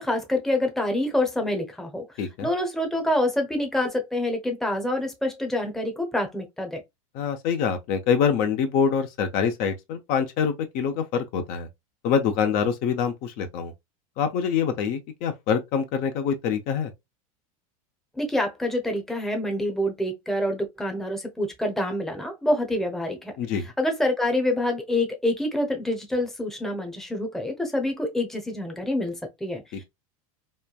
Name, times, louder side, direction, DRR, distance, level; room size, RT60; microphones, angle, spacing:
voice 1, 0.0-2.0 2.4-6.8 18.1-23.3 23.6-29.8, left 1 dB, ahead, 0.7 m, -26 dB
voice 2, 2.2-2.5 7.1-11.7 12.0-13.7 14.2-16.9 23.4-23.7 29.7-29.8, left 7 dB, 55° left, 0.6 m, -25 dB
3.1 x 2.2 x 2.3 m
supercardioid pair, 120°, 18 cm